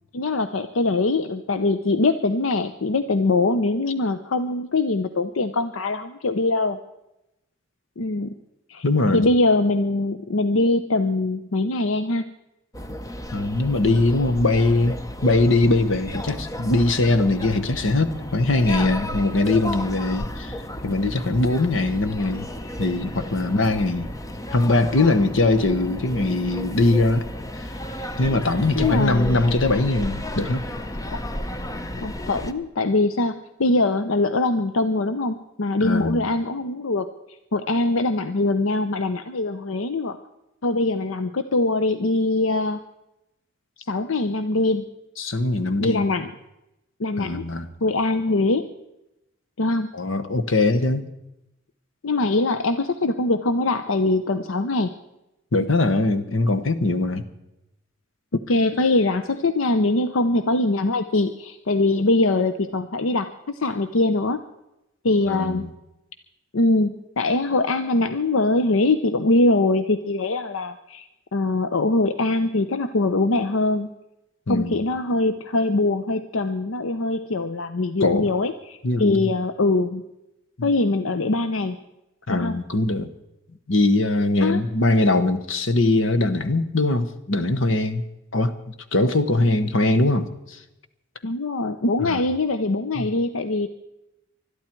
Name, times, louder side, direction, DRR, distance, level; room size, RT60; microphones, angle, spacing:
voice 1, 0.1-6.8 8.0-8.4 8.7-8.8 9.1-12.2 28.8-29.4 31.1-31.2 32.0-37.1 37.5-40.2 40.6-42.8 43.9-44.9 45.8-46.3 47.0-47.4 47.8-48.7 49.6-49.9 52.0-54.9 58.3-64.4 65.0-65.7 66.5-73.9 74.5-80.0 80.6-81.8 82.3-82.6 84.4-84.6 91.2-93.7, left 2 dB, 90° left, 10 dB, 0.7 m, -22 dB
voice 2, 8.8-9.3 13.3-15.0 15.2-22.5 22.8-24.1 24.5-27.3 27.6-27.7 28.2-30.7 35.8-36.2 45.2-46.0 47.2-47.7 49.9-51.0 55.5-57.2 65.3-65.6 74.5-74.8 78.0-78.3 78.8-79.3 82.3-83.1 83.7-88.0 88.3-90.6 92.0-92.2 93.0-93.1, left 2 dB, 70° left, 9 dB, 1.2 m, -21 dB
sound 1, 12.7-32.5, left 1 dB, 15° left, 0.8 m, -33 dB
20.5 x 13.0 x 4.6 m, 0.90 s
head